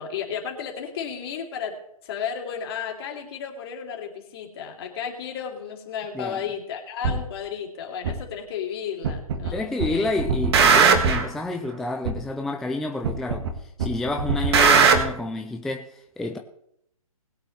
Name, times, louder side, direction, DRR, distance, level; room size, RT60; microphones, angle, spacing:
voice 1, 0.0-1.7 2.0-10.1 11.0-11.2, left 7 dB, 40° left, 2.9 m, -33 dB
sound 1, 7.0-7.2 8.0-8.1 9.0-9.5 9.8-11.3 12.0-12.1 13.0-13.5 13.8-15.0, right 5 dB, 45° right, 1.7 m, -19 dB
voice 2, 9.5-16.4, left 2 dB, ahead, 0.3 m, -29 dB
20.5 x 8.8 x 3.2 m
figure-of-eight pair, 135°, 19 cm